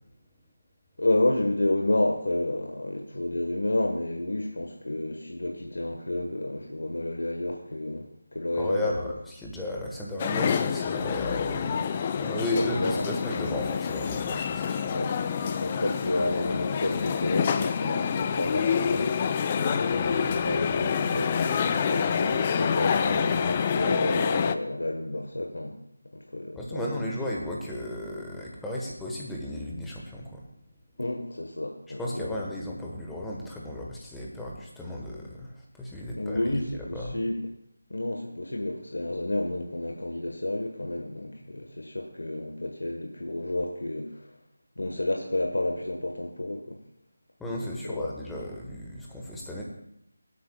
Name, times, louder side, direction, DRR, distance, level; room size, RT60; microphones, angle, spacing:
voice 1, 1.0-8.0 8.3-9.1 11.7-11.8 12.2-13.0 13.6-13.7 14.9-15.1 15.4-25.7 26.1-27.2 31.0-32.4 36.1-37.4 37.9-44.1 44.8-46.8 47.6-48.1, left 1 dB, 75° left, 2 dB, 1.3 m, -30 dB
voice 2, 8.5-11.8 12.2-15.0 26.5-30.4 32.0-35.5 35.8-37.2 47.4-49.6, left 1 dB, 5° left, -3 dB, 1.3 m, -34 dB
sound 1, 10.2-24.6, left 7 dB, 25° left, 0.5 m, -27 dB
23.0 x 8.4 x 2.3 m, 0.78 s
figure-of-eight pair, 160°, 0 cm